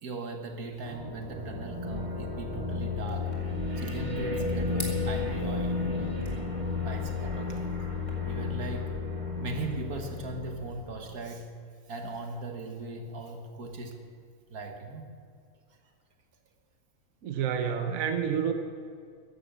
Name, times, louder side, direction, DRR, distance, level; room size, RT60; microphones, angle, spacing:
voice 1, 0.0-3.4 3.8-6.3 6.8-7.8 8.2-9.0 9.4-11.5 11.9-14.0 14.5-15.1, right 3 dB, 85° right, 4 dB, 1.9 m, -38 dB
sound 1, 0.8-11.0, left 4 dB, 20° right, 1.9 m, -33 dB
sound 2, 3.1-8.1, left 1 dB, 25° left, 2.5 m, -48 dB
voice 2, 17.2-18.5, right 8 dB, 70° right, 5 dB, 1.3 m, -29 dB
14.5 x 11.0 x 6.8 m, 2.2 s
omnidirectional pair, 1.5 m